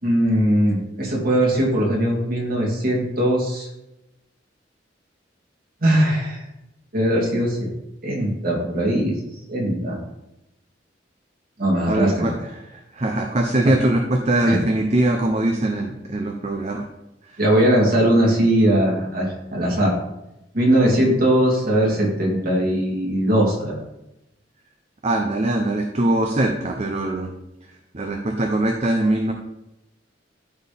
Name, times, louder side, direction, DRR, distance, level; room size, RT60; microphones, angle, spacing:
voice 1, 0.0-3.7 5.8-6.4 6.9-7.6 8.0-9.1 9.5-10.0 11.6-12.3 14.4-14.6 17.4-19.9 20.5-23.7, right 1 dB, 55° right, -3 dB, 2.8 m, -20 dB
voice 2, 11.8-16.9 17.2-17.4 25.0-27.3 27.9-29.3, right 1 dB, 40° right, 3 dB, 0.7 m, -22 dB
13.0 x 4.4 x 3.6 m, 0.90 s
head